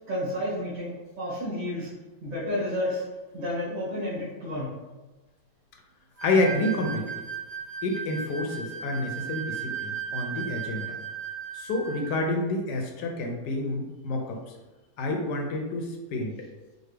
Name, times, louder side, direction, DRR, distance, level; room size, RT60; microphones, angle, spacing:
voice 1, 0.1-1.9 2.2-3.0 3.3-4.7, left 1 dB, 55° right, -9 dB, 1.9 m, -31 dB
voice 2, 6.2-7.2 7.8-11.0 11.5-14.5 15.0-16.4, left 2 dB, 80° left, 2 dB, 1.2 m, -29 dB
sound 1, 6.2-12.2, right 7 dB, 20° left, 0.8 m, -36 dB
5.0 x 2.4 x 3.3 m, 1.1 s
omnidirectional pair, 1.8 m